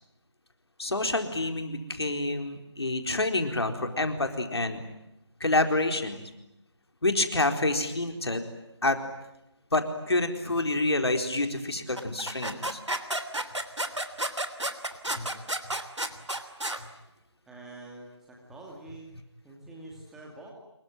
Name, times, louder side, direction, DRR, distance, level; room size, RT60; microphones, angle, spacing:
voice 1, 0.8-4.8 5.4-6.2 7.0-8.5 8.8-9.0 9.7-12.8 15.2-15.3, left 2 dB, 65° left, 6 dB, 4.3 m, -27 dB
sound 1, 12.0-16.8, right 1 dB, 85° right, 3.1 m, -32 dB
voice 2, 15.1-15.4 17.5-19.1 19.4-20.5, right 2 dB, 5° right, -2 dB, 2.4 m, -46 dB
27.5 x 23.5 x 9.3 m, 0.90 s
figure-of-eight pair, 165°, 15 cm